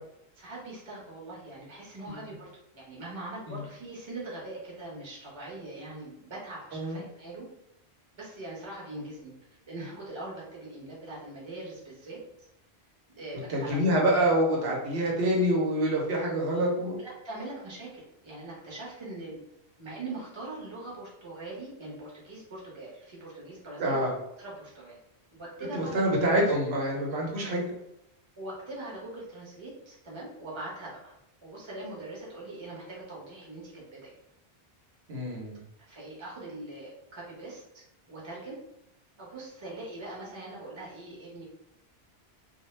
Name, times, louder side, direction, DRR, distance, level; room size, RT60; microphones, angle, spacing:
voice 1, 0.4-2.5 2.7-7.5 8.2-9.3 9.7-12.2 13.1-13.8 17.0-19.4 19.8-24.1 24.4-25.0 25.3-26.0 28.4-31.1 31.4-34.1 35.9-38.6 39.2-41.4, right 2 dB, 30° right, -5 dB, 0.8 m, -42 dB
voice 2, 13.5-17.0 23.8-24.1 25.7-27.6 35.1-35.6, right 1 dB, 85° right, -2 dB, 1.0 m, -26 dB
2.2 x 2.0 x 3.1 m, 0.83 s
omnidirectional pair, 1.1 m